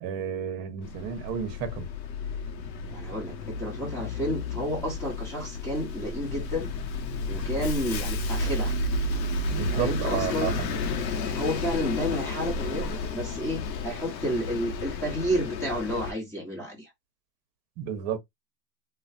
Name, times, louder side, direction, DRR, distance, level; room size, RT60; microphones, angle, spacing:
voice 1, 0.0-1.9 9.5-10.7 17.8-18.2, right 8 dB, 40° right, 1.0 m, -32 dB
Bus, 0.8-16.1, left 2 dB, 90° left, 0.9 m, -32 dB
voice 2, 2.9-6.7 7.3-8.8 9.7-10.6 11.3-16.9, equal, 5° left, 1.0 m, -31 dB
3.1 x 2.3 x 2.7 m
supercardioid pair, 135°, 50 cm